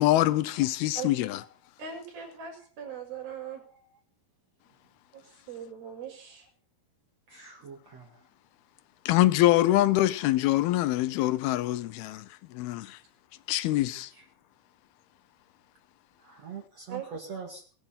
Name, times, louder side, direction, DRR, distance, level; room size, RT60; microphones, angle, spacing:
voice 1, 0.0-1.4 9.1-13.0 13.5-14.1, left 15 dB, 90° left, 2.8 m, -24 dB
voice 2, 1.8-3.6 5.1-6.5 16.9-17.0, right 7 dB, 70° right, 6.7 m, -40 dB
voice 3, 7.3-8.3 10.2-10.3 13.9-14.2 16.2-17.6, right 5 dB, 50° right, 3.1 m, -44 dB
19.5 x 11.5 x 5.8 m
omnidirectional pair, 4.3 m